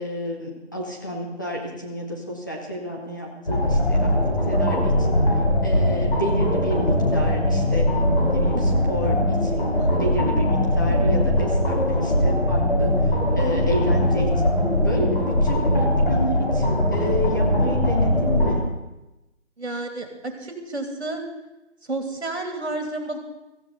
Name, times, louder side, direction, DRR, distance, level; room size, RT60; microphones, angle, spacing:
voice 1, 0.0-7.9 8.3-9.7 10.0-14.6 14.8-18.6, equal, 15° left, -3 dB, 1.0 m, -30 dB
sound 1, 3.5-18.5, left 1 dB, 50° left, 3.8 m, -21 dB
voice 2, 19.6-21.2 21.9-23.2, right 2 dB, 65° right, 4 dB, 2.8 m, -31 dB
16.5 x 14.5 x 4.0 m, 0.98 s
figure-of-eight pair, 165°, 36 cm